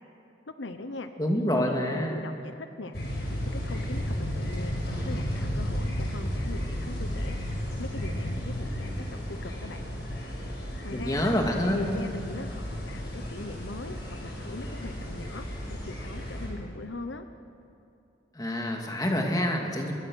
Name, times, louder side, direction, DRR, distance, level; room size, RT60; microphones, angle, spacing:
voice 1, 0.6-3.0 3.3-4.8 5.0-7.4 7.8-9.9 10.8-11.3 11.7-17.3, left 2 dB, 80° left, 9 dB, 1.0 m, -40 dB
voice 2, 1.2-2.2 10.9-11.8 18.3-19.9, equal, 20° left, 1 dB, 2.5 m, -27 dB
sound 1, 2.9-16.5, equal, 60° left, 6.0 m, -33 dB
24.0 x 22.0 x 6.4 m, 2.6 s
head